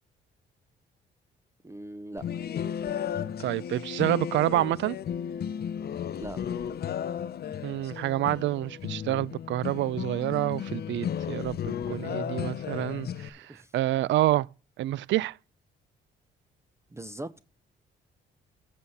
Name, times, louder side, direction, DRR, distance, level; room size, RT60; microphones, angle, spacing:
voice 1, 1.6-2.2 6.1-6.6 13.5-13.7 16.9-17.3, right 1 dB, 15° right, 0.6 m, -40 dB
sound 1, 2.2-13.3, left 9 dB, 50° left, 0.7 m, -34 dB
voice 2, 3.4-5.0 7.6-14.5 14.8-15.4, right 15 dB, 70° right, 0.4 m, -28 dB
8.2 x 5.6 x 6.4 m
cardioid pair, 90°, 20 cm